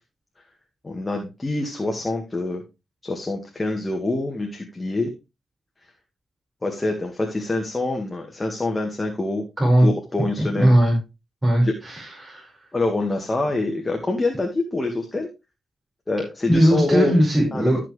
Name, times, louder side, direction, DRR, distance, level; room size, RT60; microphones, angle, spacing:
voice 1, 0.8-2.6 3.0-5.1 6.6-9.4 9.8-10.7 11.6-11.7 12.7-15.3 16.1-17.1 17.5-17.8, left 2 dB, 25° left, 2 dB, 1.9 m, -25 dB
voice 2, 9.6-9.9 10.4-11.0 11.4-12.5 16.5-17.8, equal, 20° right, -3 dB, 5.2 m, -18 dB
13.0 x 5.9 x 3.3 m, 0.25 s
cardioid pair, 65°, 0 cm